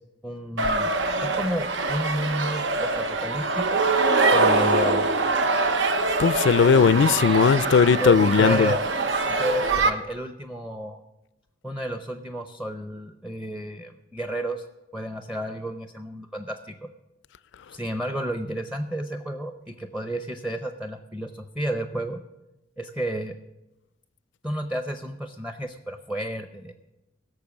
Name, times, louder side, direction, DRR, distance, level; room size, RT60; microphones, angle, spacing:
voice 1, 0.2-0.9 1.2-3.8 4.3-5.1 7.8-8.8 9.3-11.0 11.6-14.6 14.9-16.7 17.7-22.2 22.8-23.3 24.4-26.7, equal, 5° right, 0.6 m, -31 dB
sound 1, 0.6-9.9, right 3 dB, 85° right, 0.9 m, -24 dB
voice 2, 6.2-8.7, left 6 dB, 75° left, 0.4 m, -18 dB
17.0 x 6.8 x 7.1 m
head